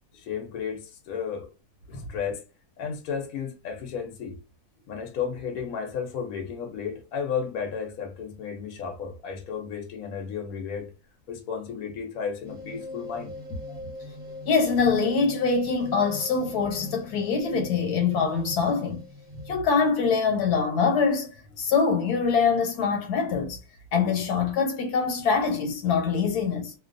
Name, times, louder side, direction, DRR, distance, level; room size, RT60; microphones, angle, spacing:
voice 1, 0.1-1.5 1.9-2.4 2.8-4.4 4.9-10.9 11.3-13.9, left 6 dB, 70° left, 1.1 m, -33 dB
sound 1, 12.4-21.0, left 2 dB, 40° right, 0.6 m, -41 dB
voice 2, 14.5-19.0 19.5-23.6 23.9-26.7, left 5 dB, 90° left, 1.3 m, -24 dB
2.7 x 2.2 x 2.5 m
omnidirectional pair, 1.6 m